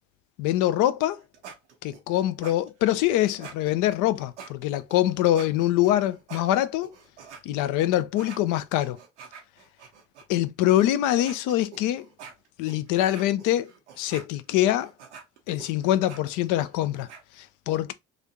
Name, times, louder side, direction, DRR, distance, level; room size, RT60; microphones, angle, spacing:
voice 1, 0.4-1.2 1.8-6.9 7.4-9.0 10.3-12.1 12.6-13.7 14.0-14.9 15.5-17.1 17.4-17.9, left 13 dB, 65° left, 0.5 m, -24 dB
sound 1, 1.0-7.4 7.8-10.2 10.8-10.9 11.1-17.2, right 6 dB, 85° right, 0.7 m, -46 dB
3.3 x 2.5 x 2.8 m
hypercardioid pair, 45°, 33 cm